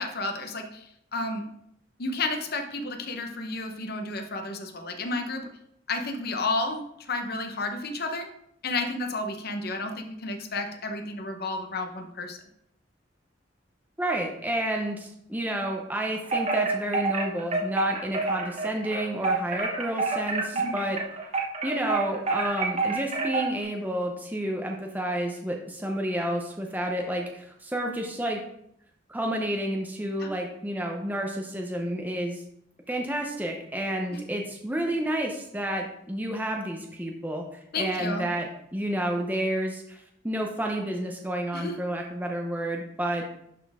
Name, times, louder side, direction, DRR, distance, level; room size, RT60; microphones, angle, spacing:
voice 1, 0.0-1.5 2.0-5.5 5.9-8.3 8.6-12.4 20.5-20.7 30.2-30.3 34.1-34.2 37.7-38.3 41.5-41.8, left 2 dB, 55° left, 5 dB, 0.9 m, -32 dB
voice 2, 14.0-21.0 21.6-28.4 29.1-32.4 32.9-37.4 37.8-38.5 38.7-40.0 40.2-43.2, right 1 dB, 10° right, 1 dB, 0.7 m, -30 dB
Wind chime, 16.2-23.6, right 3 dB, 35° right, 1.2 m, -28 dB
11.0 x 4.4 x 3.5 m, 0.75 s
head